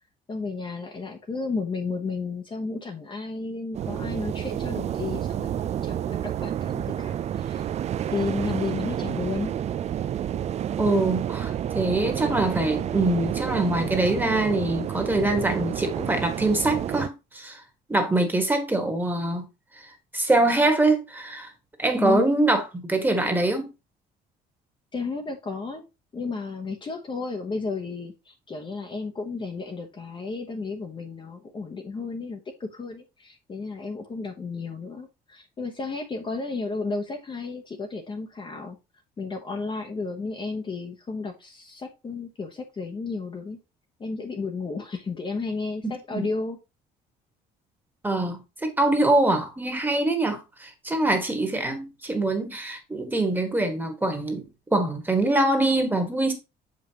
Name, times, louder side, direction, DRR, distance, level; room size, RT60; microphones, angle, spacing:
voice 1, 0.3-7.7 8.0-9.5 22.0-22.3 24.9-25.8 26.1-38.8 39.2-43.6 44.0-46.6, left 4 dB, 30° left, 0.9 m, -33 dB
sound 1, 3.7-17.1, right 10 dB, 40° right, 0.4 m, -30 dB
voice 2, 10.8-17.6 17.9-19.4 20.1-21.5 21.8-23.7 45.8-46.3 48.0-54.4 54.7-56.3, right 2 dB, 10° right, 1.5 m, -24 dB
6.7 x 5.3 x 2.9 m
cardioid pair, 110°, 17 cm